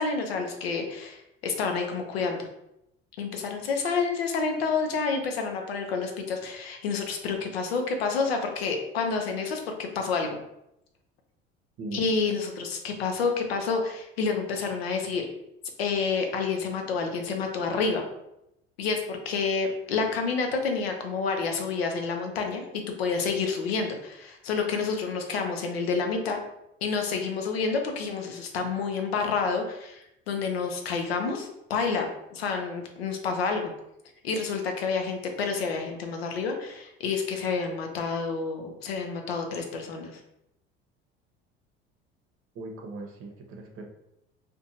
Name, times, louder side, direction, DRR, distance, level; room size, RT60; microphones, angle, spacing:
voice 1, 0.0-2.5 3.2-10.4 11.9-15.2 15.8-18.0 18.8-22.6 23.0-26.4 26.8-33.6 34.2-40.2, left 4 dB, 90° left, 4 dB, 0.5 m, -29 dB
voice 2, 42.5-43.9, right 2 dB, 45° right, 2 dB, 0.7 m, -39 dB
2.6 x 2.2 x 2.7 m, 0.83 s
hypercardioid pair, 70°, 30 cm